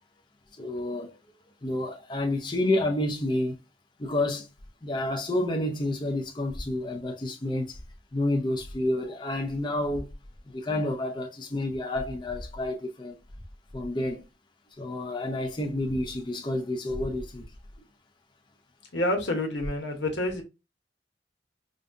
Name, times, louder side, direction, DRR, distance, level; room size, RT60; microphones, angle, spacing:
voice 1, 0.6-1.1 1.6-3.6 4.0-4.5 4.8-7.8 8.1-10.1 10.5-13.2 13.7-14.2 14.8-17.5, left 1 dB, 25° left, 0.6 m, -29 dB
voice 2, 18.9-20.4, left 1 dB, 85° left, 1.1 m, -28 dB
5.0 x 2.3 x 2.6 m
head